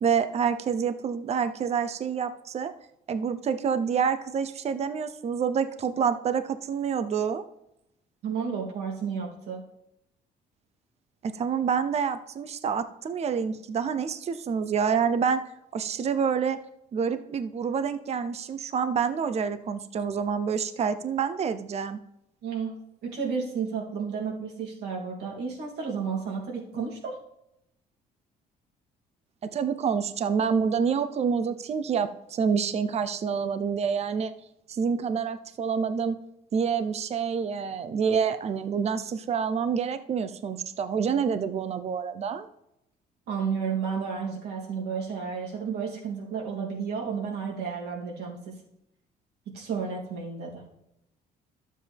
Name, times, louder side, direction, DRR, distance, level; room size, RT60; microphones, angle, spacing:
voice 1, 0.0-2.7 3.1-7.4 11.2-15.4 15.7-16.6 16.9-22.0 29.5-34.3 34.7-36.2 36.5-42.5, right 6 dB, 40° right, 11 dB, 0.7 m, -27 dB
voice 2, 8.2-9.6 22.4-22.7 23.0-27.2 43.3-48.6 49.5-50.6, right 6 dB, 75° right, -2 dB, 2.9 m, -32 dB
12.0 x 7.5 x 3.5 m, 0.82 s
cardioid pair, 110°, 17 cm